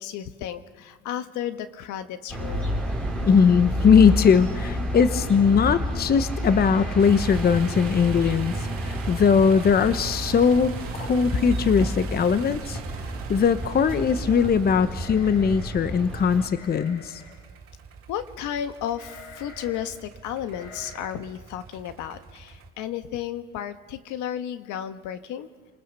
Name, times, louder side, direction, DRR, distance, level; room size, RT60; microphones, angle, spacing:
voice 1, 0.0-2.7 18.1-25.5, left 10 dB, 65° left, 10 dB, 1.6 m, -33 dB
sound 1, 2.3-16.5, equal, 5° left, 4.5 m, -30 dB
voice 2, 3.2-12.8 13.3-17.2, left 6 dB, 30° left, 12 dB, 1.0 m, -20 dB
sound 2, 6.3-7.3 7.6-7.7 8.1-8.4 9.0-9.1 9.4-9.9 10.2-10.3 11.4-11.5 11.8-12.2 14.9-15.9 16.5-17.4 18.9-19.9 20.5-21.1, left 1 dB, 90° left, 5.5 m, -47 dB
sound 3, 7.0-22.7, right 5 dB, 45° right, 2.7 m, -42 dB
29.0 x 20.5 x 6.8 m, 1.5 s
cardioid pair, 110°, 32 cm